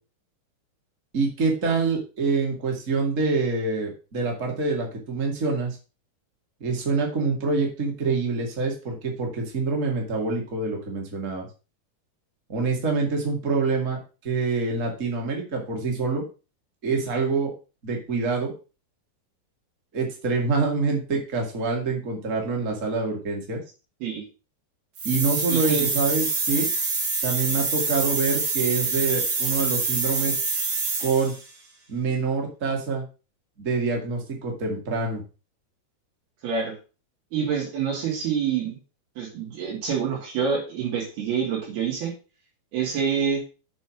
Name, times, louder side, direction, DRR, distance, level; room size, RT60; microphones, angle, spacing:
voice 1, 1.1-5.8 6.6-11.5 12.5-14.0 14.2-16.2 16.8-17.5 17.8-18.5 19.9-23.6 25.0-26.7 27.2-30.4 31.0-31.3 31.9-33.1 33.6-35.2, right 4 dB, 25° right, 1 dB, 2.0 m, -26 dB
sound 1, 25.0-31.4, right 4 dB, 55° right, 3.5 m, -26 dB
voice 2, 25.5-25.9 36.4-36.7 37.3-38.8 39.2-42.1 42.7-43.4, right 7 dB, 85° right, -4 dB, 4.6 m, -26 dB
7.3 x 5.5 x 6.1 m, 0.34 s
omnidirectional pair, 4.3 m